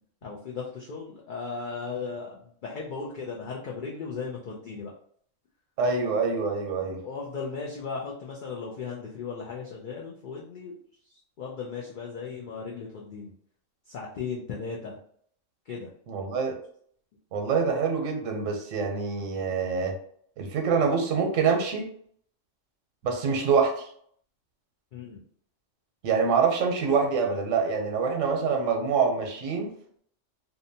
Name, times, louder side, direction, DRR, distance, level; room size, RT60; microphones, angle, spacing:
voice 1, 0.2-4.9 7.0-10.8 11.1-13.3 13.9-15.0 15.7-15.9 24.9-25.2, left 5 dB, 65° left, -3 dB, 0.5 m, -36 dB
voice 2, 5.8-7.0 16.1-16.5 17.3-20.0 20.4-21.9 23.0-23.9 26.0-29.7, right 5 dB, 85° right, 2 dB, 1.0 m, -25 dB
2.7 x 2.2 x 2.6 m, 0.62 s
omnidirectional pair, 1.3 m